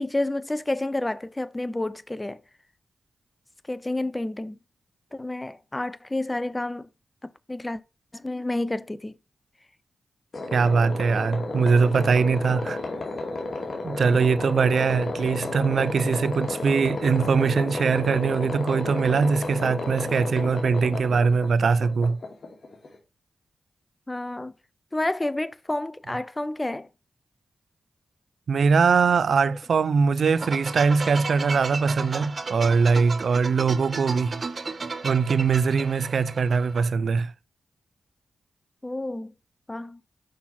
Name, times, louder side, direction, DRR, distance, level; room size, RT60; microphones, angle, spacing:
voice 1, 0.0-2.4 3.7-4.6 5.1-6.9 7.2-7.8 8.1-9.2 24.1-24.5 24.9-26.9 29.5-29.6 38.8-39.3 39.7-40.0, left 2 dB, 20° left, 0.6 m, -30 dB
sound 1, 10.3-23.0, left 2 dB, 55° left, 2.3 m, -32 dB
voice 2, 10.5-12.8 13.8-22.2 28.5-34.4 35.0-37.3, right 5 dB, 70° right, 0.4 m, -22 dB
sound 2, 30.3-36.9, right 4 dB, 50° right, 0.8 m, -34 dB
6.1 x 5.7 x 4.3 m
cardioid pair, 45°, 0 cm